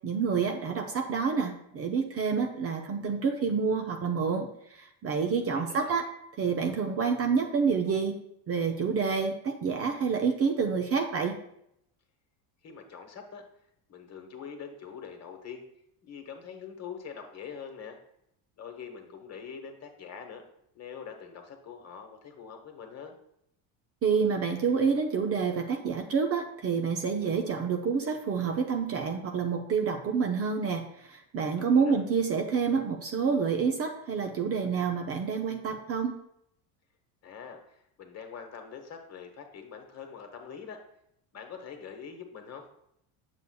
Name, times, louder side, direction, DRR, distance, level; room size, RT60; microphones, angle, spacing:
voice 1, 0.0-6.0 6.4-8.2 8.5-11.4 24.0-36.2, right 5 dB, 35° right, 4 dB, 0.6 m, -28 dB
voice 2, 5.4-6.0 12.6-13.5 13.9-15.6 16.0-18.0 18.6-20.4 20.7-23.2 31.6-32.0 37.2-40.8 41.3-42.7, left 6 dB, 35° left, 5 dB, 1.1 m, -44 dB
8.1 x 6.8 x 2.3 m, 0.75 s
supercardioid pair, 115°, 44 cm